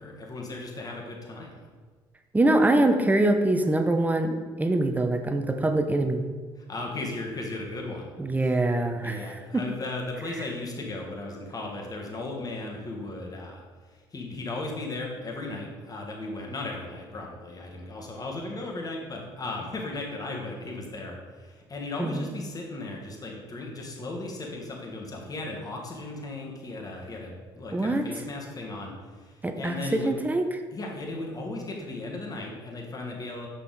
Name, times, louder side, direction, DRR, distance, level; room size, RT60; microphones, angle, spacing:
voice 1, 0.0-1.6 6.6-8.1 9.0-13.6 13.9-30.1 30.7-33.5, left 2 dB, 35° left, -1 dB, 1.6 m, -36 dB
voice 2, 2.3-6.2 8.2-9.6 22.0-22.3 27.7-28.1 29.4-30.5, right 2 dB, 15° right, 6 dB, 0.8 m, -24 dB
6.5 x 5.4 x 4.0 m, 1.5 s
supercardioid pair, 70°, 11 cm